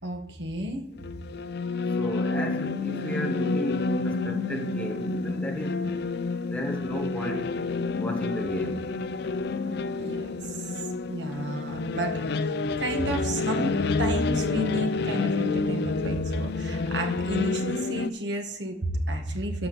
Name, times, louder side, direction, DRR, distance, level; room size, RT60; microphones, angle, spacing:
voice 1, 0.0-0.8 10.0-10.7 11.1-13.7 14.0-19.7, equal, 80° right, 1.7 m, -31 dB
sound 1, 1.0-18.1, left 3 dB, 65° left, 0.5 m, -29 dB
voice 2, 1.9-6.0 6.4-7.5 8.0-8.9, equal, 10° left, 1.5 m, -34 dB
13.0 x 5.7 x 4.1 m
head